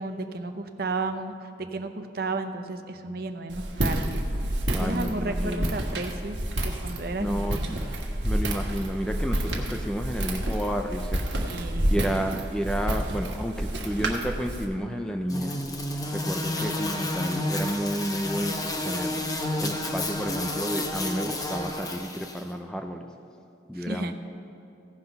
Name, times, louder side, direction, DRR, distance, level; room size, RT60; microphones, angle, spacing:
voice 1, 0.0-1.3 1.7-4.2 4.7-6.4 6.8-7.7 11.4-12.0 23.7-24.1, right 3 dB, 50° right, 7 dB, 0.7 m, -33 dB
Walk footsteps, 3.5-14.6, right 1 dB, 70° right, 1.4 m, -29 dB
voice 2, 4.7-5.8 7.2-7.8 8.2-11.4 11.9-15.6 15.9-19.2 19.6-23.1 23.7-24.1, equal, 5° left, 4 dB, 0.4 m, -31 dB
sound 1, 15.3-22.4, left 1 dB, 20° left, 0.8 m, -30 dB
16.0 x 6.0 x 5.3 m, 2.8 s
head